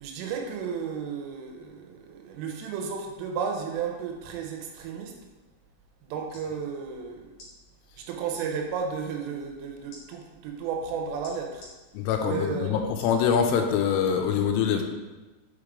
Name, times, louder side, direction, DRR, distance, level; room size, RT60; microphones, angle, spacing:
voice 1, 0.0-5.2 6.0-7.3 8.0-11.7 12.2-12.8, right 6 dB, 90° right, 2 dB, 3.3 m, -33 dB
sound 1, 6.0-6.5 7.3-7.5 8.3-8.5 9.9-10.0 11.2-11.7 13.0-13.2 13.8-13.9, left 1 dB, 45° left, 2.6 m, -47 dB
voice 2, 11.9-14.8, left 7 dB, 90° left, 5 dB, 3.2 m, -24 dB
7.3 x 4.8 x 3.6 m, 1.2 s
omnidirectional pair, 5.6 m